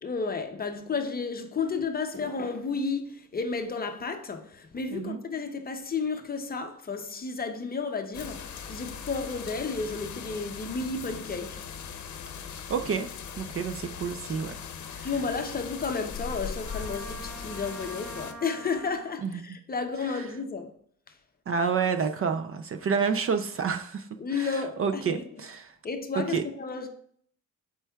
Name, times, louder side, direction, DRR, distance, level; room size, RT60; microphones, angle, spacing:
voice 1, 0.0-11.6 15.0-20.7 21.1-21.2 24.2-25.5 25.8-26.9, left 4 dB, 30° left, 0.5 m, -32 dB
sound 1, 8.1-18.3, left 6 dB, 60° left, 0.7 m, -39 dB
voice 2, 12.7-13.1 13.4-14.5 14.9-15.1 19.2-19.3 21.5-25.7 26.3-26.4, right 6 dB, 45° right, 0.4 m, -29 dB
Trumpet, 16.6-19.2, right 1 dB, 85° right, 1.5 m, -44 dB
12.0 x 4.5 x 2.3 m
wide cardioid pair, 165°, 33 cm